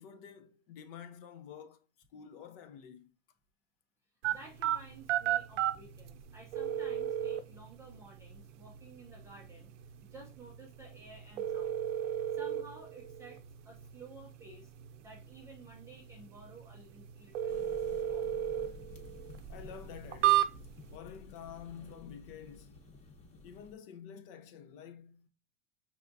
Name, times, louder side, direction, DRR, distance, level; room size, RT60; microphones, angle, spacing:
voice 1, 0.0-1.8 2.1-3.2 19.5-20.5 20.9-22.8 23.4-25.3, left 8 dB, 50° left, 0.7 m, -49 dB
sound 1, 4.2-21.0, right 12 dB, 85° right, 0.7 m, -35 dB
voice 2, 4.3-9.7 10.0-11.8 12.3-14.7 15.0-17.6 18.1-18.3, right 2 dB, 10° right, 0.4 m, -53 dB
sound 2, 17.5-23.7, left 2 dB, 20° left, 0.9 m, -53 dB
5.7 x 3.5 x 2.6 m
supercardioid pair, 155°, 36 cm